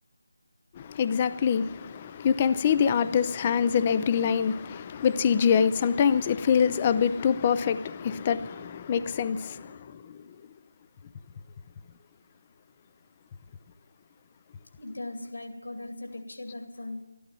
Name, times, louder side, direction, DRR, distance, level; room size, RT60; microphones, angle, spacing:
voice 1, 0.8-10.2, left 7 dB, 20° left, 0.4 m, -25 dB
voice 2, 14.8-17.0, left 2 dB, 60° left, 2.7 m, -39 dB
12.5 x 11.5 x 9.1 m
figure-of-eight pair, 160°, 0 cm